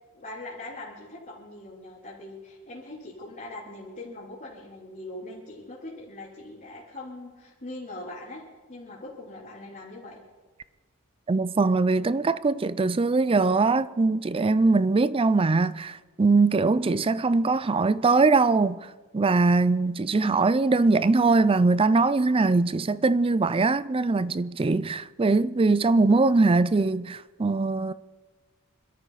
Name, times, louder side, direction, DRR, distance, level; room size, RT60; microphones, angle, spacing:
voice 1, 0.1-8.4 8.7-10.2, left 2 dB, 40° left, 3.4 m, -41 dB
voice 2, 11.3-18.8 19.1-27.9, right 3 dB, 25° right, 0.4 m, -22 dB
25.5 x 13.0 x 4.1 m
head